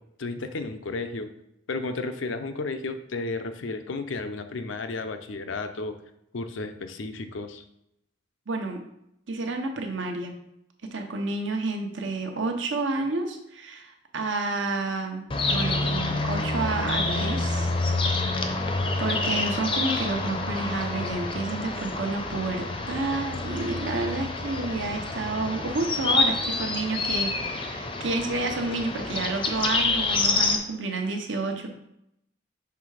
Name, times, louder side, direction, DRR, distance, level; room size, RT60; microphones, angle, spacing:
voice 1, 0.2-1.3 1.7-5.9 6.3-7.6, left 3 dB, 80° left, 8 dB, 0.6 m, -33 dB
voice 2, 8.5-8.8 9.3-10.4 10.8-17.7 18.7-31.7, right 3 dB, 75° right, 4 dB, 0.9 m, -30 dB
sound 1, 15.3-30.6, left 3 dB, 25° left, 0.6 m, -28 dB
5.9 x 3.3 x 4.9 m, 0.79 s
head